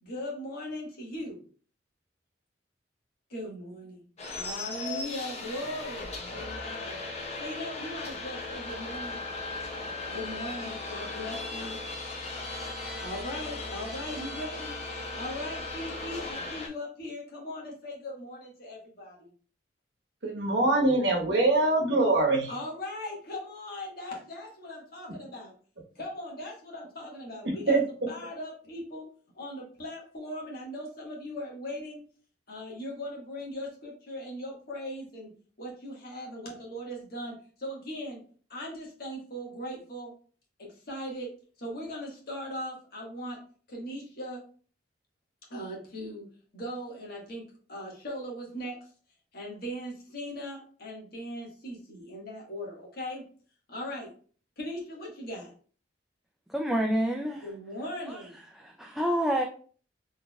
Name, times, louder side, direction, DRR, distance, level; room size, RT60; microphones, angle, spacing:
voice 1, 0.0-1.4 3.3-4.0 4.3-7.0 7.4-9.2 10.1-11.8 13.0-14.8 15.1-19.3 22.5-25.5 25.9-27.8 28.1-29.1 29.3-32.0 32.5-35.3 35.6-38.2 38.5-40.1 40.6-41.3 41.6-43.4 43.7-44.4 45.5-46.3 46.5-48.8 49.3-53.2 53.7-54.1 54.6-55.5 57.4-58.3, left 1 dB, 60° left, -2 dB, 1.4 m, -39 dB
sound 1, 4.2-16.7, left 3 dB, 35° left, 0.7 m, -37 dB
voice 2, 20.2-22.5 27.7-27.8, right 2 dB, 70° right, 0 dB, 1.1 m, -23 dB
voice 3, 56.5-57.4 58.1-58.2 58.6-59.4, equal, ahead, 0 dB, 0.3 m, -28 dB
4.0 x 3.4 x 2.2 m, 0.42 s
head